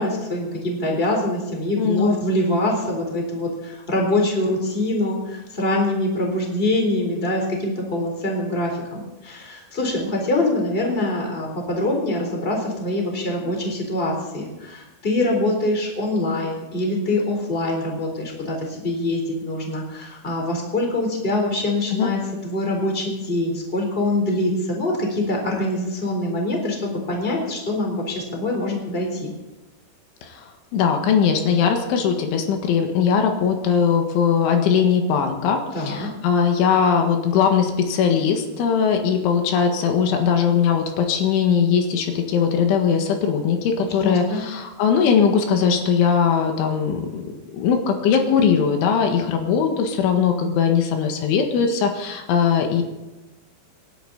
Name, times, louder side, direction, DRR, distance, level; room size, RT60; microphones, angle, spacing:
voice 1, 0.0-29.3 35.7-36.1 44.0-44.4, left 1 dB, 15° left, 0 dB, 3.5 m, -24 dB
voice 2, 1.8-2.2 21.9-22.1 30.2-30.4 30.7-47.2 47.5-52.8, left 7 dB, 85° left, 4 dB, 4.1 m, -20 dB
27.0 x 11.0 x 4.1 m, 1.1 s
omnidirectional pair, 5.4 m